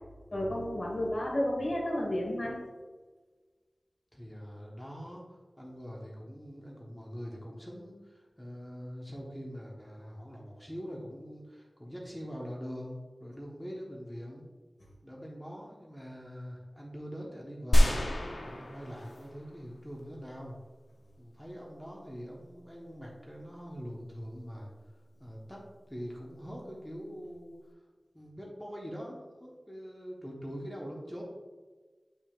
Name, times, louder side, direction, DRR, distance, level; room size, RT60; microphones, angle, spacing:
voice 1, 0.3-2.6, left 1 dB, 55° left, -2 dB, 1.8 m, -31 dB
voice 2, 4.1-5.2 5.6-14.5 15.0-18.0 18.4-20.6 21.2-24.7 25.2-25.6 25.9-27.6 28.1-31.2, equal, 5° left, -3 dB, 1.1 m, -43 dB
sound 1, 17.7-19.7 20.0-20.1, equal, 80° left, 0.8 m, -27 dB
6.5 x 6.1 x 2.5 m, 1.4 s
wide cardioid pair, 50°, 0 cm